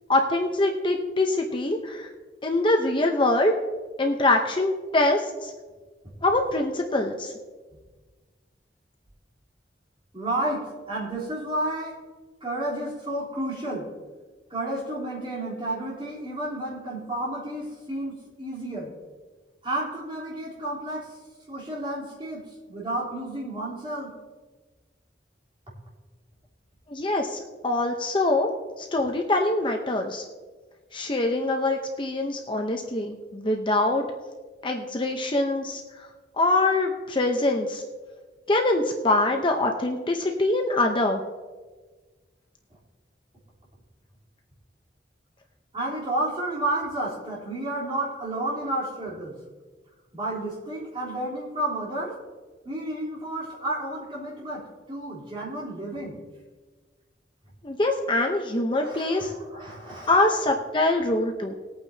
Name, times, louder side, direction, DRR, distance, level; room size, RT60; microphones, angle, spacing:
voice 1, 0.1-2.1 2.4-3.5 4.0-5.5 6.2-7.3 26.9-28.5 28.8-30.2 30.9-34.1 34.6-35.8 36.4-37.8 38.5-41.2 57.6-59.3 60.1-61.5, left 2 dB, 30° left, 2 dB, 0.8 m, -24 dB
voice 2, 10.1-12.0 12.4-13.9 14.5-18.9 19.6-21.1 21.5-24.1 45.7-49.4 50.1-52.2 52.6-56.2 58.7-60.4, right 1 dB, 30° right, -5 dB, 3.6 m, -31 dB
20.5 x 8.8 x 2.8 m, 1.3 s
head